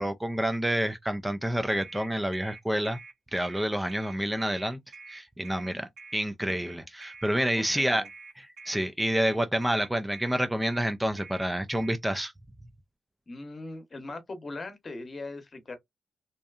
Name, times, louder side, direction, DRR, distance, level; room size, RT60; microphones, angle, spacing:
voice 1, 0.0-3.0 3.3-4.8 5.1-8.0 8.4-12.3, right 1 dB, 10° right, 0.4 m, -28 dB
sound 1, 1.8-12.0, right 3 dB, 70° right, 1.1 m, -47 dB
voice 2, 7.5-8.1 13.3-15.8, left 2 dB, 40° left, 0.9 m, -40 dB
2.7 x 2.2 x 2.4 m
supercardioid pair, 50°, 0 cm